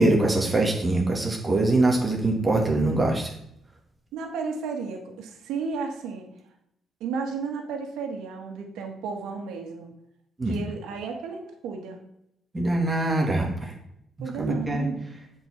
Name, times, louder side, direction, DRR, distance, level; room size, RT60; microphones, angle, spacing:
voice 1, 0.0-3.3 10.4-10.6 12.5-13.7 14.4-14.9, right 2 dB, 25° right, 0 dB, 1.8 m, -23 dB
voice 2, 4.1-6.3 7.0-9.9 10.4-12.0 14.2-15.0, right 5 dB, 90° right, 3 dB, 1.6 m, -33 dB
7.5 x 4.7 x 5.8 m, 0.77 s
cardioid pair, 90°, 0 cm